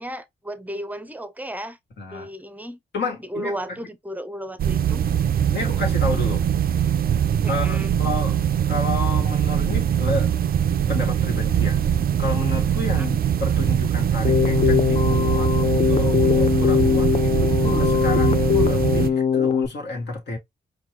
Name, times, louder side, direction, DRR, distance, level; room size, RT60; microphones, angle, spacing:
voice 1, 0.0-1.8 2.1-2.8 3.3-5.0 7.4-7.9 13.0-13.1, equal, 10° right, 0.6 m, -34 dB
voice 2, 2.0-2.3 2.9-3.8 5.5-6.4 7.5-8.4 8.7-10.3 10.9-11.8 12.2-20.4, left 3 dB, 65° left, 1.4 m, -30 dB
sound 1, 4.6-19.1, right 9 dB, 50° right, 0.4 m, -22 dB
Keyboard (musical), 14.2-19.7, left 8 dB, 35° left, 0.4 m, -21 dB
4.4 x 2.2 x 2.8 m
supercardioid pair, 55°, 19 cm